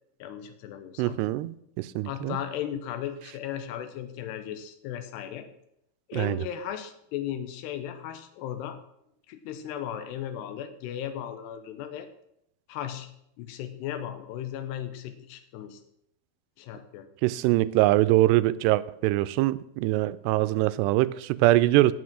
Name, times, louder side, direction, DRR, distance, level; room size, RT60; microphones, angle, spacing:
voice 1, 0.2-1.2 2.0-5.5 6.1-8.8 9.3-12.1 12.7-13.1 13.4-15.8 16.6-17.1, left 10 dB, 80° left, 3.1 m, -36 dB
voice 2, 1.0-2.4 6.1-6.4 17.2-21.9, right 17 dB, 85° right, 2.6 m, -23 dB
11.5 x 7.9 x 6.2 m
omnidirectional pair, 4.8 m